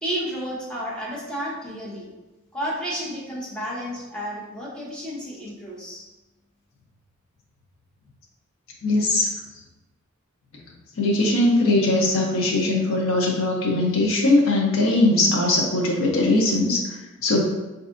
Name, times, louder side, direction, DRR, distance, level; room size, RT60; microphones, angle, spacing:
voice 1, 0.0-2.1 2.5-6.0, equal, 5° left, -6 dB, 0.7 m, -31 dB
voice 2, 8.8-9.3 11.0-17.4, left 2 dB, 75° left, -1 dB, 0.6 m, -20 dB
4.1 x 2.6 x 2.4 m, 1.1 s
head